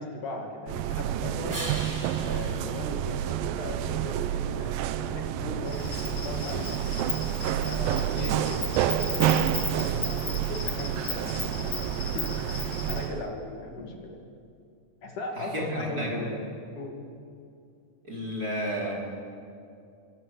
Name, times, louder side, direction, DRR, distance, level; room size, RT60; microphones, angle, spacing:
voice 1, 0.0-1.6 2.2-5.9 6.2-6.7 7.6-8.7 9.0-14.3 15.0-17.0, left 2 dB, 60° left, 1 dB, 3.7 m, -38 dB
sound 1, 0.7-13.3, right 11 dB, 80° right, 2.5 m, -29 dB
sound 2, 1.5-4.0 9.8-13.8, right 1 dB, 5° right, 1.6 m, -45 dB
Insect, 5.7-13.1, left 4 dB, 35° left, 2.6 m, -36 dB
voice 2, 15.4-16.2 18.0-18.9, equal, 25° right, -3 dB, 5.5 m, -32 dB
30.0 x 24.5 x 7.7 m, 2.4 s
omnidirectional pair, 4.2 m